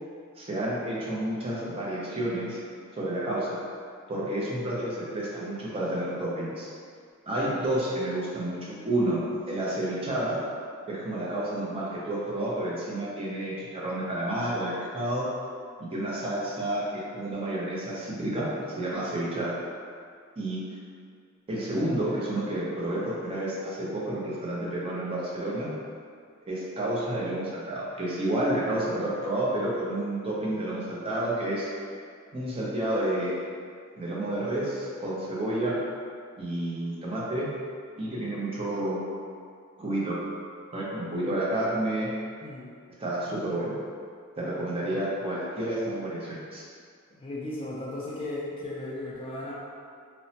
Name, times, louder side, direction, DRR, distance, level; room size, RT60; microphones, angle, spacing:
voice 1, 0.4-2.6 2.9-3.6 4.1-6.7 7.3-10.4 10.9-15.3 15.9-18.5 18.8-19.5 20.4-20.6 21.5-25.7 26.5-31.7 32.3-33.4 34.0-35.8 36.4-37.5 38.0-39.0 39.8-40.2 40.7-42.1 43.0-43.8 44.4-46.6, right 1 dB, 25° right, -6 dB, 0.5 m, -30 dB
voice 2, 42.4-42.8 44.9-45.0 47.1-49.5, left 2 dB, 25° left, -6 dB, 0.3 m, -36 dB
3.0 x 2.0 x 2.7 m, 2.2 s
head